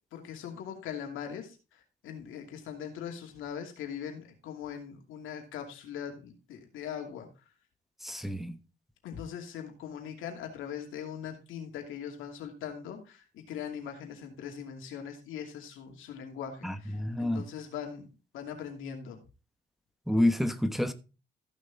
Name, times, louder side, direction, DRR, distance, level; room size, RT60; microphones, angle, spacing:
voice 1, 0.1-7.3 9.0-18.1 18.3-19.2, left 8 dB, 90° left, 2.7 m, -41 dB
voice 2, 8.0-8.6 16.6-17.4 20.1-20.9, left 1 dB, ahead, 1.0 m, -28 dB
14.5 x 6.5 x 3.6 m
cardioid pair, 90°, 20 cm